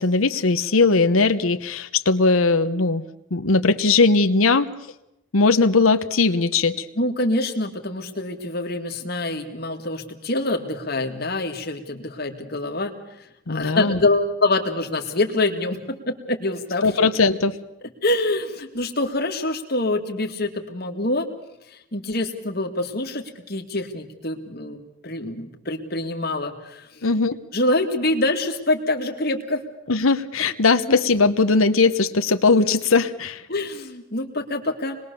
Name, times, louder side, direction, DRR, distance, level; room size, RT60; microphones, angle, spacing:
voice 1, 0.0-3.0 3.3-4.7 5.3-6.9 13.5-14.0 16.8-17.6 27.0-27.4 29.9-33.4, left 3 dB, 80° left, 9 dB, 1.0 m, -19 dB
voice 2, 7.0-12.9 13.5-16.9 18.0-21.3 21.7-27.1 27.5-29.6 33.5-35.0, left 2 dB, 45° left, 4 dB, 2.2 m, -25 dB
26.0 x 21.0 x 7.0 m, 0.87 s
head